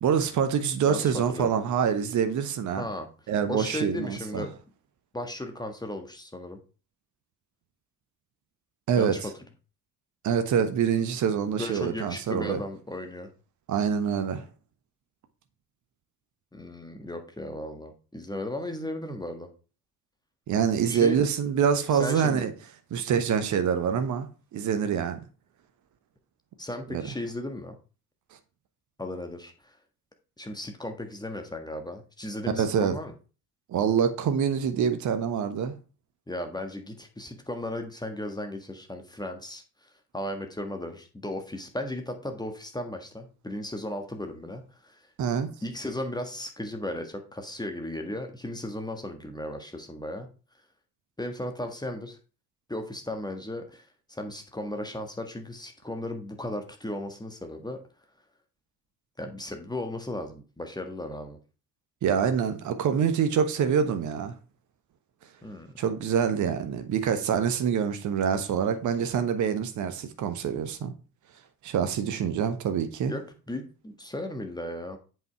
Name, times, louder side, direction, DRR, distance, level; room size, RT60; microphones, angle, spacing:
voice 1, 0.0-2.9 3.3-4.5 8.9-9.2 10.2-12.6 13.7-14.4 20.5-22.5 22.9-24.3 24.5-25.2 26.9-27.1 32.6-33.0 33.7-35.7 45.2-45.5 62.0-64.3 65.8-70.9 71.6-73.1, right 7 dB, 40° right, 1.1 m, -26 dB
voice 2, 0.9-1.5 2.8-3.1 3.5-4.5 5.1-6.6 9.0-9.3 11.6-13.3 16.5-19.5 20.9-21.2 21.9-22.4 26.6-27.7 29.0-29.7 30.4-33.1 36.3-39.6 40.1-44.9 45.6-50.3 51.2-52.2 52.7-53.8 54.1-57.8 59.2-61.4 65.4-65.7 73.1-73.2 73.5-75.0, left 1 dB, 10° left, 1.5 m, -35 dB
7.9 x 5.5 x 4.6 m
figure-of-eight pair, 50°, 45 cm